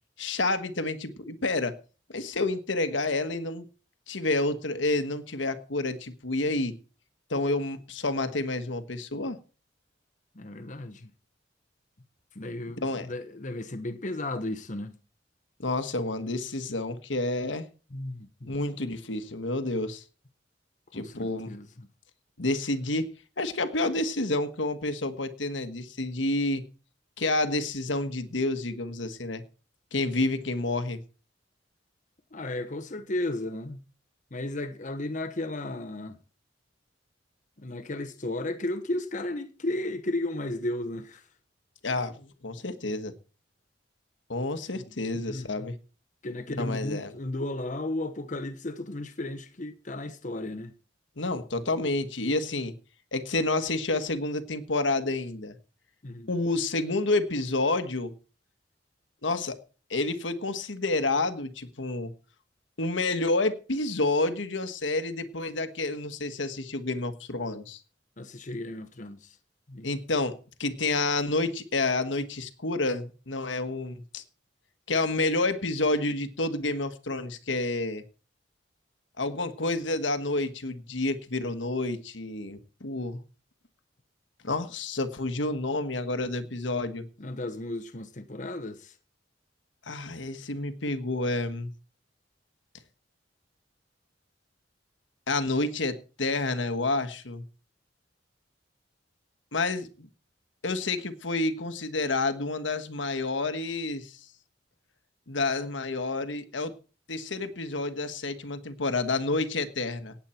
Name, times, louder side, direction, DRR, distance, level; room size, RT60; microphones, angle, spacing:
voice 1, 0.2-1.8 2.1-3.6 4.1-6.7 7.3-9.4 12.8-13.1 15.6-17.6 18.5-20.0 20.9-21.5 22.4-23.1 23.4-26.6 27.2-29.4 29.9-31.0 41.8-43.1 44.3-45.7 46.6-47.1 51.2-52.7 53.1-55.5 56.3-58.1 59.2-59.6 59.9-62.1 62.8-67.8 69.8-74.2 74.9-78.0 79.2-83.2 84.4-87.0 89.8-91.7 95.3-97.4 99.5-100.1 100.6-104.2 105.3-106.7 107.1-110.2, left 2 dB, 85° left, 1.5 m, -29 dB
voice 2, 10.4-11.1 12.4-14.9 17.9-18.6 20.9-21.7 32.3-33.8 34.3-36.2 37.6-41.2 44.7-44.8 45.2-45.7 46.2-50.7 56.0-56.3 68.2-69.3 69.7-69.9 87.2-88.9, left 1 dB, 45° left, 1.1 m, -34 dB
17.5 x 8.6 x 4.5 m
head